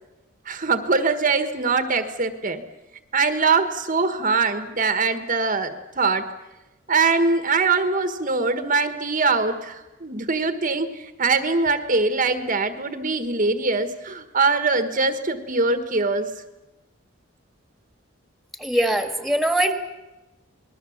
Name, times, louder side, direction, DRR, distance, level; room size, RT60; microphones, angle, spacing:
voice 1, 0.4-2.6 3.1-6.3 6.9-16.3, right 4 dB, 40° right, 8 dB, 1.5 m, -22 dB
voice 2, 18.6-19.7, right 1 dB, ahead, 6 dB, 2.1 m, -22 dB
28.5 x 21.0 x 7.3 m, 1.0 s
head